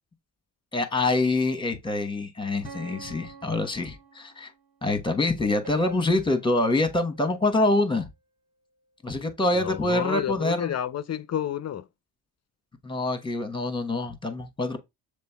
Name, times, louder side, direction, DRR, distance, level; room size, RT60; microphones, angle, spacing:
voice 1, 0.7-4.5 4.8-8.1 9.0-10.7 12.8-14.8, left 2 dB, 10° left, 1.1 m, -25 dB
sound 1, 2.6-4.6 5.6-8.0, right 4 dB, 80° right, 1.8 m, -47 dB
voice 2, 9.5-11.9, left 10 dB, 35° left, 0.5 m, -30 dB
6.7 x 3.3 x 2.3 m
hypercardioid pair, 55°, 48 cm